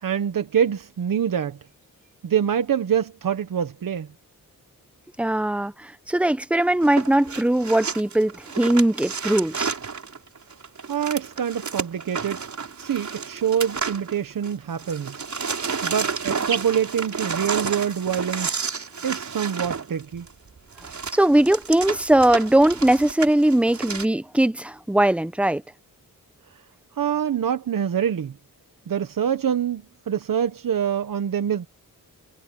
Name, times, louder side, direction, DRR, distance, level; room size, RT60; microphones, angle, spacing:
voice 1, 0.0-1.6 2.2-4.1 10.9-12.4 12.8-15.2 15.8-18.6 19.0-20.3 26.5-26.6 26.9-28.3 28.9-31.7, right 8 dB, 70° right, 1.1 m, -25 dB
voice 2, 5.2-9.7 21.1-25.6, right 1 dB, 5° right, 0.8 m, -20 dB
sound 1, 6.8-14.5 14.8-24.1, right 5 dB, 55° right, 4.2 m, -31 dB
wide cardioid pair, 145°, 34 cm